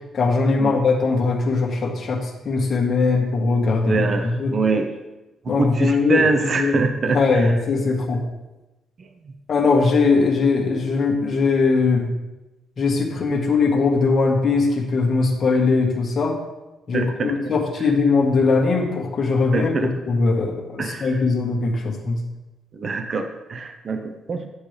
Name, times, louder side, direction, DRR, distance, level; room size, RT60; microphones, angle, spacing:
voice 1, 0.1-4.6 5.5-8.2 9.5-12.1 12.8-16.4 16.9-22.2, left 4 dB, 45° left, 0 dB, 1.5 m, -20 dB
voice 2, 3.9-4.9 5.6-7.5 9.0-9.1 16.9-17.3 19.5-19.9 20.8-21.2 22.7-24.5, right 3 dB, 45° right, 6 dB, 0.8 m, -24 dB
10.5 x 7.3 x 3.4 m, 1.0 s
cardioid pair, 90°, 0 cm